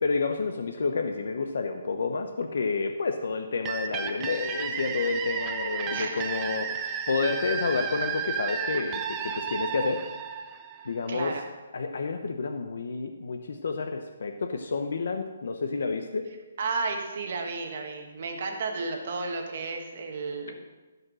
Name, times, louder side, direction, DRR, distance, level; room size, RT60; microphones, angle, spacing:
voice 1, 0.0-10.0 10.8-11.4 11.7-16.3, left 4 dB, 60° left, 6 dB, 0.7 m, -30 dB
sound 1, 3.6-11.2, right 7 dB, 10° right, 0.5 m, -33 dB
voice 2, 5.9-6.2 11.1-11.4 16.6-20.5, right 4 dB, 40° right, 3 dB, 1.3 m, -32 dB
15.0 x 5.4 x 6.2 m, 1.2 s
hypercardioid pair, 175°, 0 cm